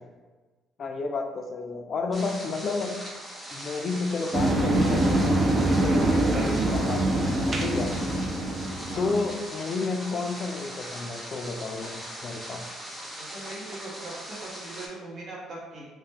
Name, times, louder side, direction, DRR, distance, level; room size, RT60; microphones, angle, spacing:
voice 1, 0.8-3.0 3.5-7.9 9.0-12.6, left 3 dB, 45° left, 4 dB, 0.4 m, -31 dB
sound 1, 2.1-14.9, equal, 10° right, 0.7 m, -40 dB
sound 2, 4.3-9.3, right 1 dB, 35° right, 0.4 m, -24 dB
voice 2, 13.1-15.9, right 2 dB, 50° right, -5 dB, 1.0 m, -40 dB
2.7 x 2.1 x 3.3 m, 1.3 s
cardioid pair, 110°, 0 cm